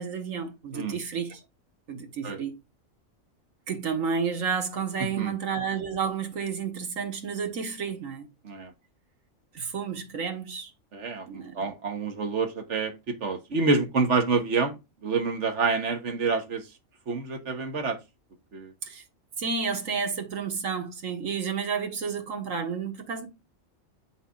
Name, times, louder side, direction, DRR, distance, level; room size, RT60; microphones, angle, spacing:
voice 1, 0.0-1.4 1.9-2.6 3.7-8.3 9.5-10.7 11.3-11.7 18.8-19.0 19.4-23.3, right 6 dB, 90° right, 1.8 m, -31 dB
voice 2, 5.0-5.3 8.4-8.7 10.9-16.7 17.1-18.0 18.5-18.7, right 4 dB, 65° right, 1.5 m, -28 dB
7.7 x 5.9 x 2.5 m
omnidirectional pair, 1.3 m